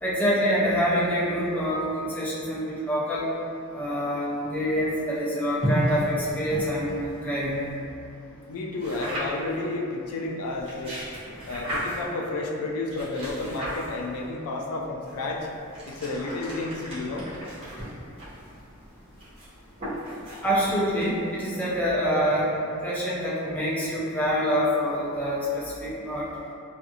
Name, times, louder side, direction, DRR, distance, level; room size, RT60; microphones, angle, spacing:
voice 1, 0.0-3.3 3.7-7.6 20.4-22.5 22.8-26.3, equal, 5° left, -8 dB, 0.4 m, -26 dB
sound 1, 5.6-7.7 8.8-9.5 10.5-12.2 12.9-14.2 15.0-21.5, equal, 25° right, 0.8 m, -34 dB
voice 2, 8.5-11.0 11.5-15.5 15.8-17.3, left 2 dB, 80° left, 0 dB, 0.3 m, -31 dB
2.4 x 2.4 x 2.7 m, 2.6 s
head